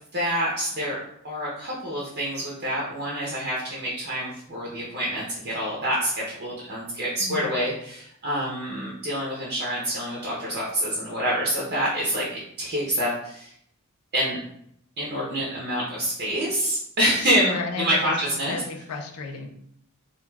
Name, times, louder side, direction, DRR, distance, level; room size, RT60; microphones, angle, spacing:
voice 1, 0.1-1.0 1.2-13.5 14.1-14.4 15.0-18.6, equal, 45° right, -5 dB, 0.6 m, -27 dB
voice 2, 7.2-7.5 17.2-18.1 18.4-19.5, left 4 dB, 75° left, 4 dB, 0.4 m, -33 dB
2.3 x 2.2 x 3.1 m, 0.70 s
head